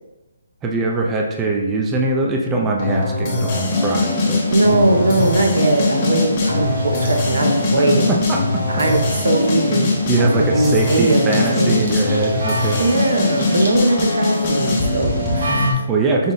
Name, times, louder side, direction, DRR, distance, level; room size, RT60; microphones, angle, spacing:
voice 1, 0.6-4.4 7.8-8.6 10.1-12.8 15.9-16.3, right 3 dB, 15° right, 0 dB, 0.3 m, -21 dB
sound 1, 2.8-15.7, left 2 dB, 25° left, 0.9 m, -21 dB
sound 2, 3.8-15.7, right 2 dB, 55° right, 1.1 m, -34 dB
voice 2, 4.5-8.2 8.7-9.9 10.4-11.9 12.8-15.7, right 2 dB, 80° right, 3 dB, 0.7 m, -19 dB
5.3 x 2.0 x 3.8 m, 1.1 s
hypercardioid pair, 165°, 0 cm